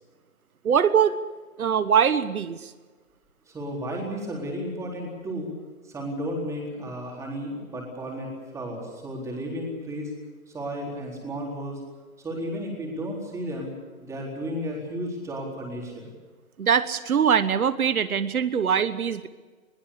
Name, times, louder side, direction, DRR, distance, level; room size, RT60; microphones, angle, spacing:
voice 1, 0.6-1.1 1.6-2.7 16.6-19.3, right 7 dB, 80° right, 13 dB, 1.3 m, -22 dB
voice 2, 3.5-5.5 5.8-8.3 8.5-10.1 10.5-11.8 12.2-13.7 14.0-16.1, equal, 5° right, -1 dB, 4.1 m, -33 dB
22.0 x 17.5 x 8.5 m, 1.4 s
hypercardioid pair, 160°, 42 cm